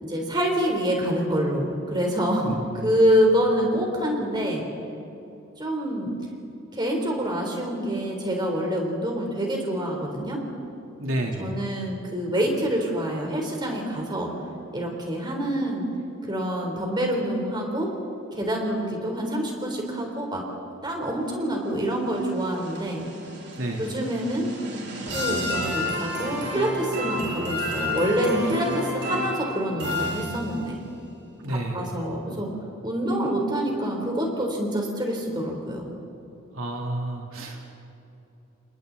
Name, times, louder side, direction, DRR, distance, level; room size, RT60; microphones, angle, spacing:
voice 1, 0.0-4.6 5.6-6.1 6.7-10.4 11.4-14.3 14.7-15.9 16.2-17.9 18.4-20.4 20.8-23.1 23.8-24.5 25.1-30.8 31.5-32.5 32.8-35.9, equal, 20° right, 0 dB, 3.8 m, -26 dB
voice 2, 2.4-2.9 11.0-11.6 23.6-23.9 31.4-31.8 36.5-37.7, right 1 dB, 85° right, 0 dB, 3.5 m, -30 dB
sound 1, 21.9-30.8, left 1 dB, 55° right, 3.7 m, -31 dB
29.5 x 29.5 x 4.1 m, 2.9 s
head